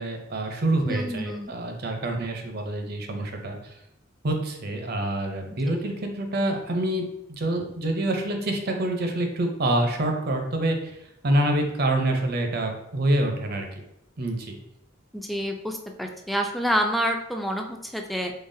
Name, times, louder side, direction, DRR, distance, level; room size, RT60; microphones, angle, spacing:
voice 1, 0.0-3.7 4.2-13.7 14.2-14.6, right 1 dB, 55° right, 4 dB, 0.6 m, -26 dB
voice 2, 0.9-1.5 5.7-5.9 15.1-18.3, equal, ahead, 3 dB, 0.3 m, -28 dB
3.9 x 3.3 x 2.6 m, 0.81 s
head